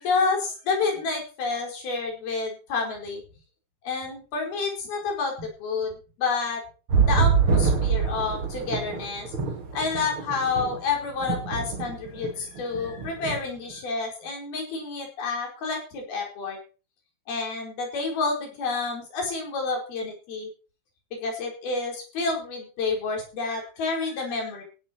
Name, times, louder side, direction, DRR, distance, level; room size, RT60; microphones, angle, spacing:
voice 1, 0.0-3.2 3.8-6.6 7.0-9.3 9.7-16.6 17.3-20.5 21.1-24.6, left 4 dB, 75° left, 1 dB, 6.8 m, -29 dB
sound 1, 6.9-10.9 11.2-12.3 12.6-13.4 13.7-13.8, right 5 dB, 40° right, 2.7 m, -25 dB
16.0 x 11.5 x 4.6 m, 0.35 s
omnidirectional pair, 4.3 m